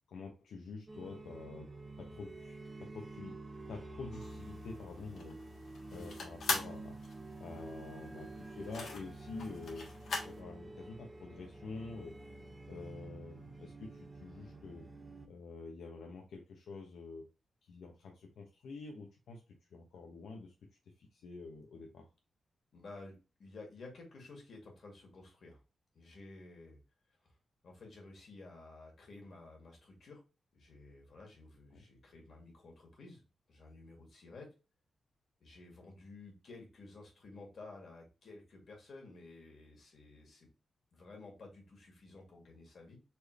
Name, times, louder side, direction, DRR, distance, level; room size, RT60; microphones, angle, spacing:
voice 1, 0.1-1.7 2.0-3.4 3.7-5.4 5.9-7.0 7.4-12.2 12.7-14.9 15.2-17.3 17.6-19.4 19.7-20.5 21.0-22.1 31.7-31.8, left 3 dB, 90° left, 1 dB, 0.8 m, -47 dB
sound 1, 0.9-15.3, right 2 dB, 20° right, 0.5 m, -49 dB
sound 2, 4.1-10.4, left 3 dB, 75° left, 1.4 m, -41 dB
voice 2, 22.7-25.6 25.9-26.8 27.6-30.2 30.5-33.2 33.5-34.5 35.4-40.5 40.9-43.0, left 3 dB, 55° left, 0 dB, 2.0 m, -53 dB
4.3 x 3.4 x 3.1 m, 0.31 s
wide cardioid pair, 120°, 0 cm